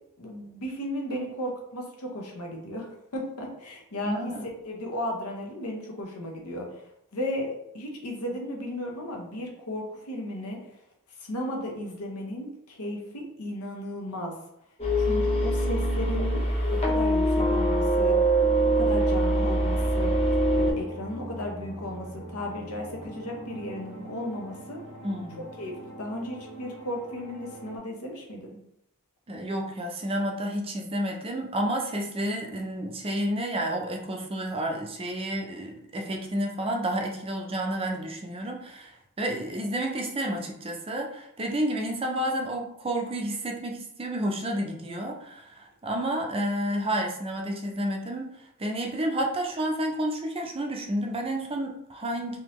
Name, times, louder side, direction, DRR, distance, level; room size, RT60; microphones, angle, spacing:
voice 1, 0.2-2.9 3.1-6.8 7.1-10.6 11.2-14.3 15.0-16.3 16.7-18.3 18.6-20.1 20.6-24.8 25.6-28.6, left 1 dB, 75° left, 0 dB, 0.9 m, -35 dB
voice 2, 4.0-4.4 25.0-25.4 29.3-48.3 48.6-52.4, right 1 dB, 25° right, 1 dB, 0.5 m, -30 dB
sound 1, 14.8-20.7, right 1 dB, 30° left, 0.8 m, -23 dB
sound 2, 19.5-27.8, right 1 dB, 85° right, 1.1 m, -42 dB
3.5 x 2.9 x 3.0 m, 0.78 s
head